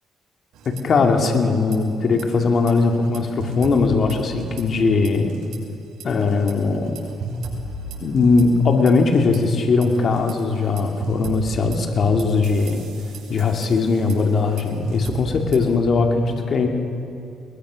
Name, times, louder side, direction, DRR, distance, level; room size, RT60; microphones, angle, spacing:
sound 1, 0.5-1.3 1.5-1.8 2.1-4.8 5.0-5.6 6.0-9.4 9.8-15.8, right 2 dB, 80° right, 5.7 m, -34 dB
voice 1, 0.8-5.3 6.0-6.9 8.0-12.8 13.3-16.7, left 4 dB, 55° left, 4 dB, 2.4 m, -19 dB
21.0 x 21.0 x 6.4 m, 2.7 s
cardioid pair, 90°, 0 cm